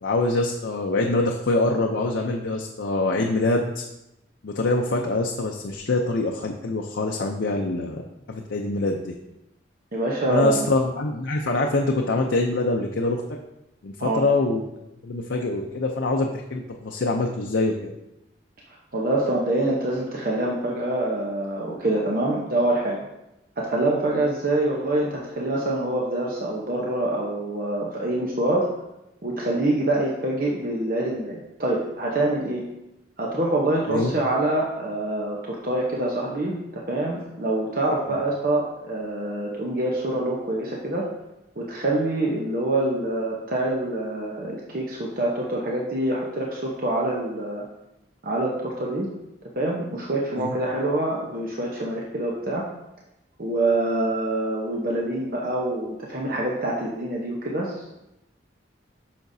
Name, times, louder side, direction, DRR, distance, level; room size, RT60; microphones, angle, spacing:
voice 1, 0.0-3.8 4.4-8.0 8.3-9.1 10.3-13.4 13.8-14.6 15.0-17.9 33.9-34.1 50.4-50.5, left 2 dB, 80° left, 1 dB, 0.6 m, -24 dB
voice 2, 9.9-10.7 14.0-14.3 18.9-23.0 23.6-28.7 29.2-32.6 33.2-41.1 41.6-47.6 48.2-49.1 49.6-52.7 53.4-57.9, right 1 dB, 50° right, -3 dB, 0.9 m, -25 dB
8.6 x 5.8 x 2.7 m, 0.90 s
head